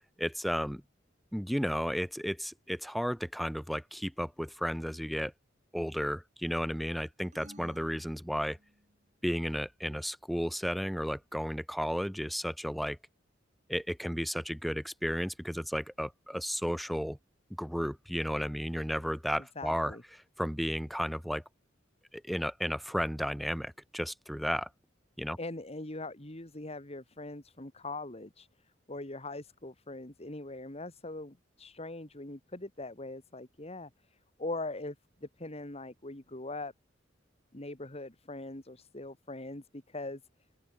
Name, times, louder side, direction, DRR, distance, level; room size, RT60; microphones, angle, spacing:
voice 1, 0.2-0.8 1.3-5.3 5.7-8.6 9.2-13.0 13.7-17.2 17.6-19.9 20.4-21.4 22.1-24.7 25.2-25.4, equal, ahead, 1.0 m, -33 dB
sound 1, 7.3-9.0, right 1 dB, 40° right, 7.2 m, -55 dB
voice 2, 19.4-20.0 25.4-35.0 35.2-36.7 37.5-40.2, left 2 dB, 35° left, 2.5 m, -42 dB
head